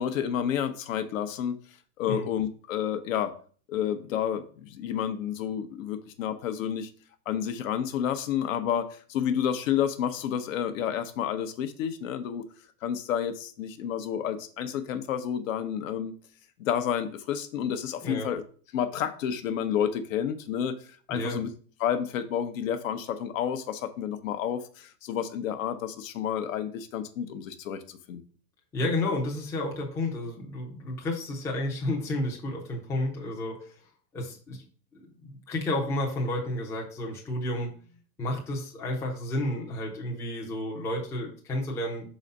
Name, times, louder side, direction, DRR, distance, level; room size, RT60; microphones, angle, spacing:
voice 1, 0.0-3.3 3.7-6.9 7.3-12.4 12.8-16.2 16.6-18.4 18.7-21.5 21.8-28.2, left 9 dB, 55° left, 9 dB, 0.8 m, -30 dB
voice 2, 28.7-33.8 34.1-34.6 34.9-37.7 38.2-42.1, left 1 dB, 5° left, -1 dB, 0.6 m, -31 dB
5.0 x 4.1 x 5.3 m, 0.43 s
hypercardioid pair, 145°, 49 cm